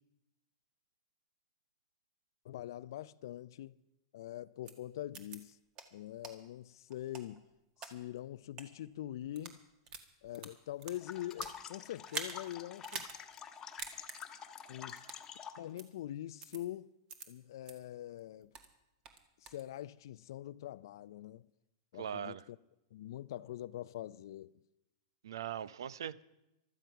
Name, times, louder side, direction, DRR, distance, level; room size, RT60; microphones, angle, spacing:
voice 1, 2.4-3.8 4.1-5.6 5.9-7.4 7.8-9.6 10.2-13.0 14.7-15.0 15.6-16.9 17.3-18.5 19.4-21.5 21.9-22.6 22.9-24.5, left 13 dB, 70° left, 0.4 m, -44 dB
sound 1, 4.7-4.8 5.1-5.4 5.8-5.9 6.2-6.3 6.9-7.9 8.5-8.7 9.2-9.6 9.9-11.6 12.1-12.4 12.8-13.2 13.5-13.6 13.8-14.2 15.0-15.2 15.8-15.9 16.4-16.6 17.1-17.3 17.7-17.8 18.2-18.7 19.1-19.6, right 5 dB, 35° right, 1.8 m, -44 dB
sound 2, 10.9-15.7, left 8 dB, 25° left, 1.2 m, -48 dB
voice 2, 22.0-22.4 25.2-26.2, right 9 dB, 85° right, 0.6 m, -40 dB
15.0 x 13.0 x 5.8 m
hypercardioid pair, 125°, 2 cm